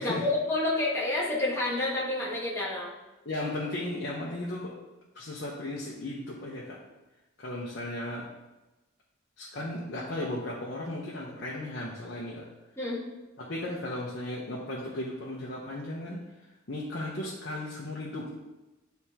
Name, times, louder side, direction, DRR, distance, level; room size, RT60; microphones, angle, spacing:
voice 1, 0.0-2.9 12.8-13.0, left 2 dB, 15° left, -5 dB, 1.3 m, -29 dB
voice 2, 3.2-4.7 5.1-6.8 7.4-8.3 9.4-12.4 13.4-16.2 16.7-18.3, left 1 dB, 55° left, -5 dB, 0.8 m, -35 dB
9.5 x 3.5 x 2.9 m, 1.0 s
head